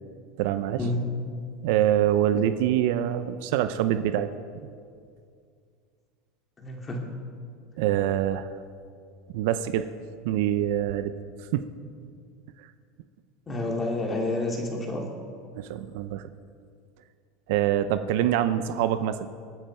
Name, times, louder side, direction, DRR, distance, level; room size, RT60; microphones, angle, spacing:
voice 1, 0.4-0.9 1.6-4.3 7.8-8.5 9.3-9.9 10.2-11.2 11.5-11.7 15.5-16.3 17.5-19.3, right 11 dB, 70° right, 11 dB, 0.7 m, -25 dB
voice 2, 6.6-7.0 13.5-15.1, left 2 dB, 20° left, 1 dB, 2.6 m, -29 dB
27.0 x 9.1 x 4.5 m, 2.3 s
supercardioid pair, 145°, 0 cm